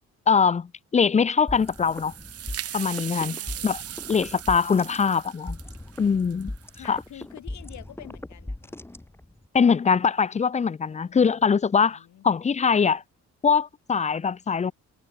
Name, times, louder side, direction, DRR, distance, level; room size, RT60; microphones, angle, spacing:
voice 1, 0.3-2.1 2.7-3.4 3.6-3.8 4.1-5.6 6.0-6.5 6.9-7.0 9.5-13.0 13.4-14.7, left 6 dB, 25° left, 0.5 m, -22 dB
sound 1, 1.5-9.5, left 1 dB, 10° left, 1.5 m, -39 dB
sound 2, 1.5-7.1, right 11 dB, 55° right, 0.8 m, -38 dB
voice 2, 3.2-4.0 6.7-8.8 10.8-12.2, left 11 dB, 70° left, 2.7 m, -48 dB
cardioid pair, 90°, 30 cm